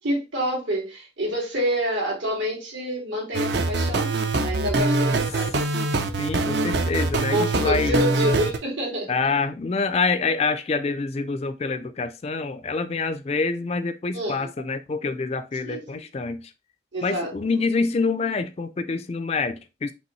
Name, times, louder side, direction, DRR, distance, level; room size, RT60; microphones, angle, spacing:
voice 1, 0.0-4.1 4.4-5.6 7.3-9.1 14.1-14.5 15.6-16.0 16.9-17.3, equal, 85° right, 2.4 m, -27 dB
sound 1, 3.3-8.6, right 2 dB, 60° right, 0.5 m, -23 dB
voice 2, 6.2-8.0 9.1-16.5 17.0-19.9, left 4 dB, 35° left, 0.4 m, -26 dB
5.3 x 3.0 x 3.1 m
head